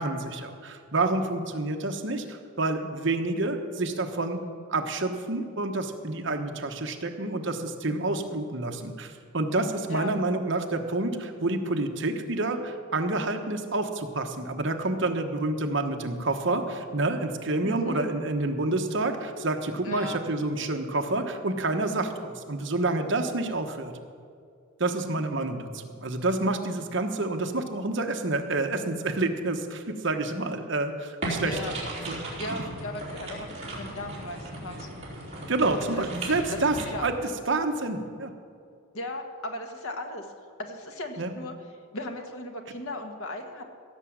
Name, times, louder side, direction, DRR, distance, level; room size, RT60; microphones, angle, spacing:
voice 1, 0.0-23.9 24.8-31.7 32.0-32.2 35.5-36.8 37.0-37.1 37.5-38.3 41.2-41.3, right 2 dB, 55° right, 5 dB, 1.1 m, -28 dB
voice 2, 17.6-18.1 19.8-20.2 31.4-31.7 32.4-34.9 35.8-36.1 36.5-37.1 38.9-40.3 40.6-41.5 41.9-43.6, left 1 dB, 80° left, 4 dB, 1.6 m, -36 dB
sound 1, 31.2-36.8, right 1 dB, 30° right, 3.4 m, -36 dB
16.5 x 7.1 x 7.4 m, 2.3 s
head